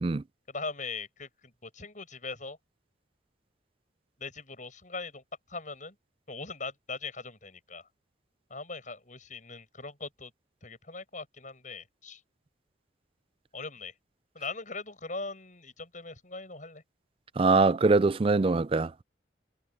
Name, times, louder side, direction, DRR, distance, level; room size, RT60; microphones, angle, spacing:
voice 1, 0.5-2.6 4.2-5.2 5.5-6.0 6.3-7.9 8.5-10.3 10.6-12.2 13.5-13.9 14.3-16.8, left 3 dB, 40° left, 7.9 m, -40 dB
voice 2, 17.4-19.0, right 3 dB, 30° right, 0.4 m, -23 dB
head